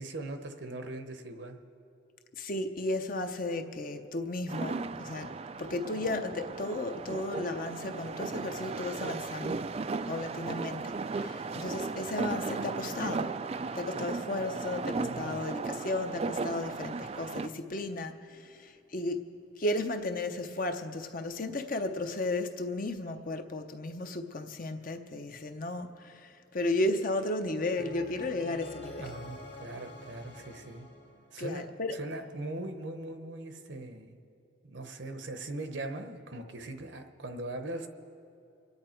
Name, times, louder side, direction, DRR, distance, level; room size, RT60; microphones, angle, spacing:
voice 1, 0.0-1.6 29.0-30.9 31.3-31.7 31.9-34.2 34.6-37.9, right 2 dB, 65° right, 7 dB, 0.9 m, -40 dB
voice 2, 2.4-9.7 10.1-13.3 13.7-19.2 19.6-29.2 31.4-32.0, left 2 dB, 45° left, 6 dB, 0.7 m, -34 dB
sound 1, 4.5-17.5, right 4 dB, 30° right, 0.3 m, -36 dB
sound 2, 27.8-31.8, left 1 dB, 65° left, 1.9 m, -47 dB
25.0 x 9.7 x 4.5 m, 2.7 s
head